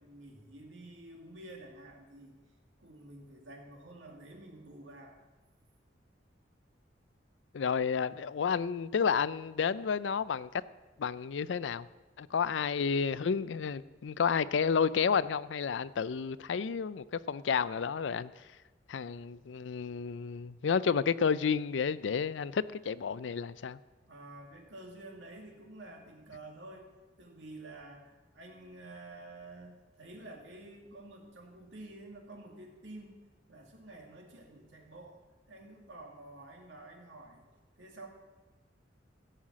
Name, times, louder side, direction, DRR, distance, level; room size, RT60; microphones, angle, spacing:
voice 1, 0.0-2.4 2.8-5.2 12.4-12.5 24.0-26.9 27.2-33.2 33.5-35.2 35.5-37.4 37.8-38.1, right 2 dB, 85° right, 1 dB, 2.3 m, -50 dB
voice 2, 7.5-10.5 11.0-11.9 12.2-18.3 18.9-23.8, left 6 dB, 80° left, 17 dB, 0.4 m, -31 dB
16.0 x 5.7 x 7.4 m, 1.2 s
head